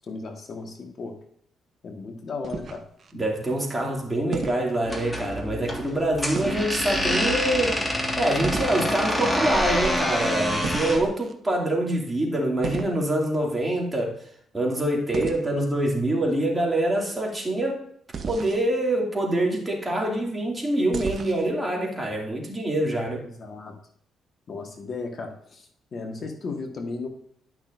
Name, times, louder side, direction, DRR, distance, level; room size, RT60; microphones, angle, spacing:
voice 1, 0.1-1.1 1.8-2.8 23.4-23.7 24.5-27.1, left 4 dB, 50° left, 3 dB, 1.4 m, -35 dB
sound 1, 2.4-3.1 4.3-4.7 6.3-6.8 8.4-9.1 10.6-11.3 12.6-13.0 15.1-15.4 18.1-18.6 20.9-21.5, right 5 dB, 50° right, 0.9 m, -33 dB
voice 2, 3.1-7.8 8.2-14.3 14.5-17.8 18.3-23.2, right 1 dB, 15° right, -2 dB, 2.5 m, -25 dB
sound 2, 4.8-11.1, equal, 10° left, 1.8 m, -26 dB
11.5 x 6.0 x 2.6 m, 0.66 s
cardioid pair, 90°, 0 cm